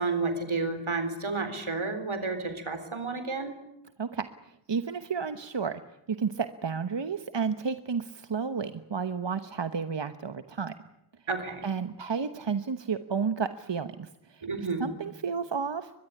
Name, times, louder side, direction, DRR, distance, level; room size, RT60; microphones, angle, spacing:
voice 1, 0.0-3.6 11.3-11.7 14.4-14.9, right 3 dB, 85° right, 9 dB, 4.0 m, -31 dB
voice 2, 4.0-5.8 6.2-10.7 11.6-14.5 14.8-15.9, right 5 dB, 65° right, 10 dB, 1.2 m, -32 dB
23.5 x 21.5 x 9.9 m, 0.85 s
wide cardioid pair, 55°, 47 cm